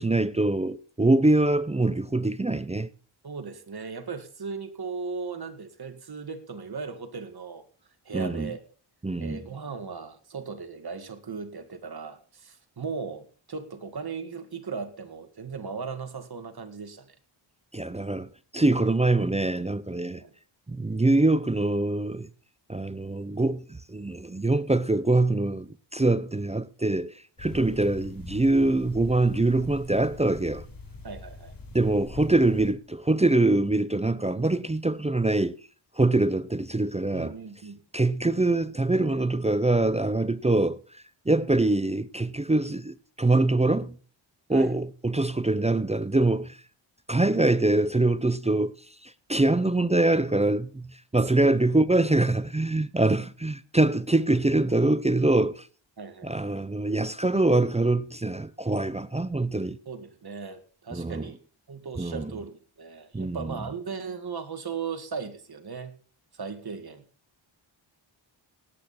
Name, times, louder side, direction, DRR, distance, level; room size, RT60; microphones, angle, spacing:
voice 1, 0.0-2.9 8.1-8.5 9.0-9.4 17.7-20.2 20.7-22.3 22.7-30.6 31.7-35.5 36.0-37.3 37.9-44.0 44.5-46.6 47.1-55.7 56.2-59.8 60.9-61.3 62.0-62.3 63.1-63.5, right 2 dB, 15° right, 0.6 m, -24 dB
voice 2, 3.2-7.6 8.1-8.6 9.2-17.2 20.2-20.3 27.7-27.9 31.0-31.5 37.1-37.8 44.5-44.7 51.4-51.6 56.0-56.3 59.9-61.4 61.7-66.0 66.3-67.0, right 5 dB, 50° right, 2.0 m, -37 dB
sound 1, 27.4-32.7, left 2 dB, 45° left, 3.6 m, -43 dB
18.5 x 8.6 x 4.3 m
cardioid pair, 75°, 48 cm